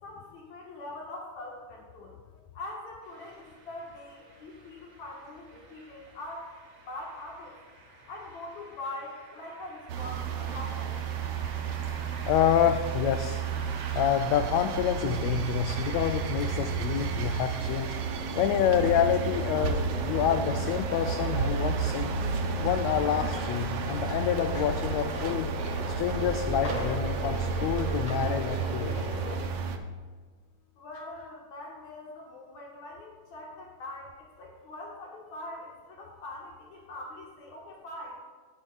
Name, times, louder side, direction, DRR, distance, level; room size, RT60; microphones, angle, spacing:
voice 1, 0.0-6.5 6.9-7.6 8.1-11.0 30.8-38.2, left 2 dB, 65° left, -2 dB, 2.8 m, -43 dB
sound 1, 3.0-18.0, right 3 dB, 45° right, 1.9 m, -50 dB
sound 2, 9.9-29.8, right 5 dB, 75° right, 1.4 m, -32 dB
voice 2, 12.3-13.4 13.9-22.2 22.6-25.6 25.9-29.2, left 9 dB, 80° left, 8 dB, 1.6 m, -28 dB
sound 3, 19.3-29.3, left 1 dB, 30° left, 0.7 m, -39 dB
16.0 x 9.7 x 2.4 m, 1.5 s
omnidirectional pair, 3.5 m